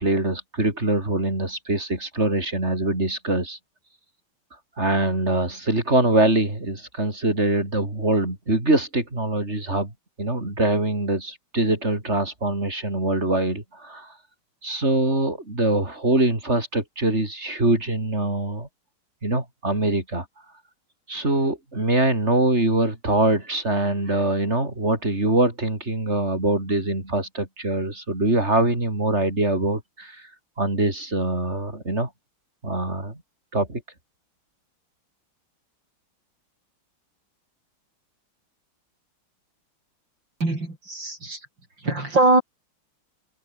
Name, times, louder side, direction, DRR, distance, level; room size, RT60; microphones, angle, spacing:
voice 1, 0.0-3.6 4.8-9.9 10.2-14.2 14.6-18.7 19.2-20.3 21.1-32.1 32.6-33.2 33.5-33.8, right 2 dB, 30° right, 5.6 m, -23 dB
voice 2, 40.4-41.5 41.8-42.4, right 2 dB, 60° right, 6.9 m, -22 dB
omnidirectional pair, 2.3 m